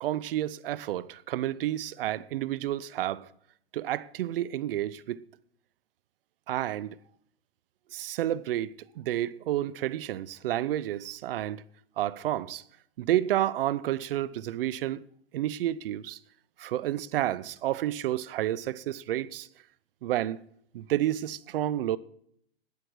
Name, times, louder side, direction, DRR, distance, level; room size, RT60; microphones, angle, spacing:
voice 1, 0.0-3.3 3.7-5.2 6.5-7.0 7.9-11.6 12.0-12.6 13.0-15.0 15.3-16.2 16.6-19.5 20.0-20.4 20.7-22.0, right 13 dB, 65° right, 0.7 m, -30 dB
11.5 x 8.8 x 6.2 m
hypercardioid pair, 115°, 31 cm